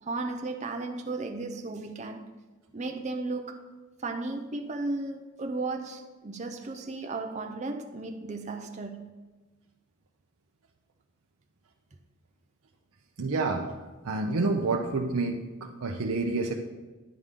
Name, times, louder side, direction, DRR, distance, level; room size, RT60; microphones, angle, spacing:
voice 1, 0.0-2.2 2.7-3.6 4.0-9.1, right 3 dB, 35° right, 0.5 m, -35 dB
voice 2, 13.2-13.7 14.0-16.5, right 3 dB, 80° right, 0.6 m, -28 dB
10.5 x 3.6 x 6.6 m
head